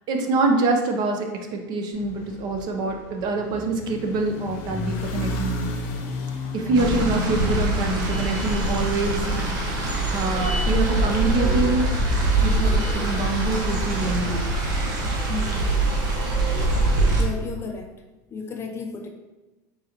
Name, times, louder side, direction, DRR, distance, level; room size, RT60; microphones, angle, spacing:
voice 1, 0.1-5.8 6.5-9.3 10.1-11.9 12.4-14.5, right 3 dB, 45° right, 3 dB, 0.6 m, -25 dB
sound 1, 1.9-10.3, left 2 dB, 60° left, 0.7 m, -34 dB
Musical instrument, 6.7-14.6 14.9-15.0, left 11 dB, 5° right, 1.1 m, -38 dB
sound 2, 6.7-17.2, right 2 dB, 75° right, 0.9 m, -23 dB
voice 2, 15.3-15.8 17.2-17.9 18.3-19.1, left 4 dB, 25° left, 3 dB, 0.5 m, -33 dB
3.9 x 3.9 x 2.9 m, 1.1 s
supercardioid pair, 125°, 10 cm